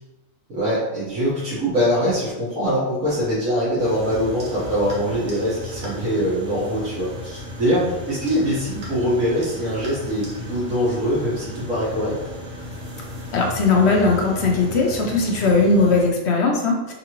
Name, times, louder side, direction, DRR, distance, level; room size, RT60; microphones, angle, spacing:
voice 1, 0.5-12.2, equal, 80° right, -10 dB, 1.7 m, -23 dB
sound 1, 3.8-16.1, left 1 dB, 65° right, 1.3 m, -35 dB
voice 2, 13.3-16.9, left 3 dB, 60° left, 0 dB, 0.9 m, -19 dB
3.8 x 3.4 x 3.0 m, 1.1 s
omnidirectional pair, 1.4 m